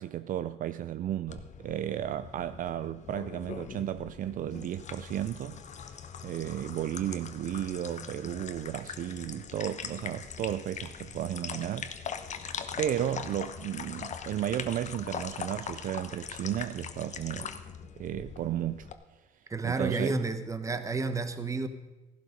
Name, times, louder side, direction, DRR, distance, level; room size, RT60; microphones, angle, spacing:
voice 1, 0.0-5.6 6.2-11.9 12.8-17.6 18.0-18.9 19.6-20.2, right 11 dB, 55° right, 0.4 m, -34 dB
sound 1, 1.3-18.9, left 7 dB, 45° left, 1.0 m, -41 dB
voice 2, 19.5-21.7, right 3 dB, 20° right, 1.1 m, -31 dB
15.0 x 11.5 x 5.2 m
cardioid pair, 110°, 17 cm